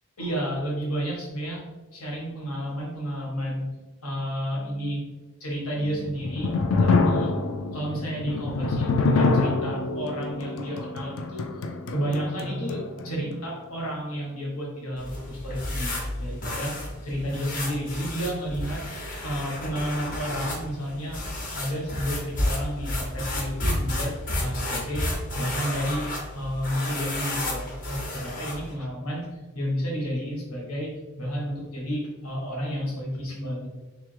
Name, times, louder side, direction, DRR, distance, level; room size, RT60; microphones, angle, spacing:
voice 1, 0.2-1.6 1.9-3.7 4.0-5.0 5.4-7.3 7.6-18.8 19.2-25.1 25.3-26.1 26.3-29.3 29.5-30.9 31.2-33.7, equal, 90° left, -2 dB, 1.4 m, -31 dB
sound 1, 6.0-13.1, left 3 dB, 65° left, 0.4 m, -26 dB
sound 2, 15.0-28.7, left 1 dB, 40° left, 0.8 m, -32 dB
3.3 x 3.3 x 3.3 m, 1.2 s
head